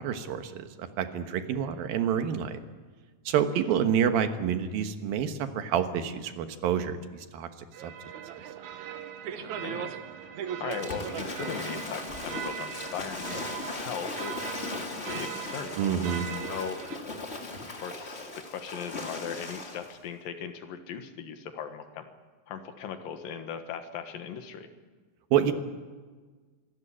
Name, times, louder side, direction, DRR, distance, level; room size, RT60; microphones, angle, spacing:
voice 1, 0.0-2.6 3.3-7.5 7.8-7.9 15.8-16.3 25.3-25.5, right 8 dB, 85° right, 8 dB, 3.1 m, -28 dB
sound 1, 7.7-17.0, right 9 dB, 65° right, 2.2 m, -39 dB
voice 2, 9.4-13.4 13.7-15.8 16.5-16.8 17.1-17.2 17.7-22.1 22.5-24.7, left 7 dB, 80° left, 8 dB, 3.2 m, -39 dB
Waves surf / Splash splatter, 10.7-20.0, left 3 dB, 25° left, 1.5 m, -38 dB
25.5 x 13.0 x 9.9 m, 1.4 s
omnidirectional pair, 4.0 m